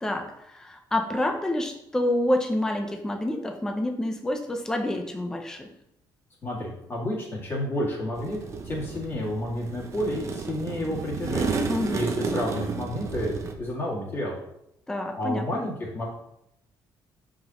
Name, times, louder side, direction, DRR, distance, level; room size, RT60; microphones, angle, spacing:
voice 1, 0.0-5.7 11.7-12.0 14.9-15.6, left 1 dB, 5° left, 4 dB, 0.5 m, -28 dB
voice 2, 6.4-8.4 8.6-11.6 11.9-14.4 15.2-16.1, left 1 dB, 25° left, -4 dB, 2.1 m, -30 dB
sound 1, 8.2-13.5, right 4 dB, 35° right, 0.7 m, -32 dB
8.3 x 5.1 x 2.9 m, 0.78 s
cardioid pair, 175°, 8 cm